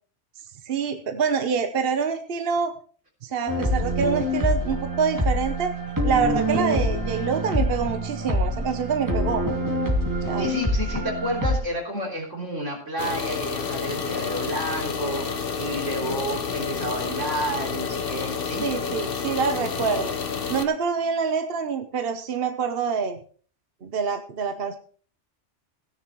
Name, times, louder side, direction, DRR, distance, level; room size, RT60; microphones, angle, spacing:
voice 1, 0.7-2.7 3.2-5.7 6.0-9.4 10.3-10.5 18.6-20.1 20.5-23.2 23.8-24.8, right 6 dB, 55° right, 8 dB, 1.1 m, -26 dB
sound 1, 3.5-11.6, equal, 15° right, 2.4 m, -25 dB
voice 2, 10.4-18.6, right 1 dB, 90° right, 0 dB, 3.9 m, -30 dB
sound 2, 13.0-20.7, left 6 dB, 50° left, 1.2 m, -29 dB
16.5 x 10.5 x 3.1 m, 0.42 s
omnidirectional pair, 1.2 m